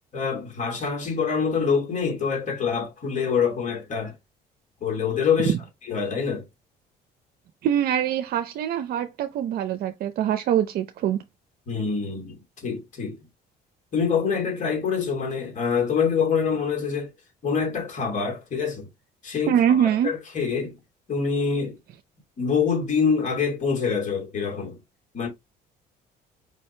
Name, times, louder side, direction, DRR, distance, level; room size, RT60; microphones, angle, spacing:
voice 1, 0.1-4.1 4.8-5.5 5.9-6.4 11.7-13.2 13.9-17.1 17.4-18.9 19.2-20.8 21.1-21.8 22.4-24.8 25.1-25.3, left 6 dB, 45° left, 2.4 m, -25 dB
voice 2, 7.6-11.2 19.5-20.1, right 10 dB, 65° right, 0.5 m, -23 dB
4.9 x 2.8 x 3.2 m
cardioid pair, 110°, 17 cm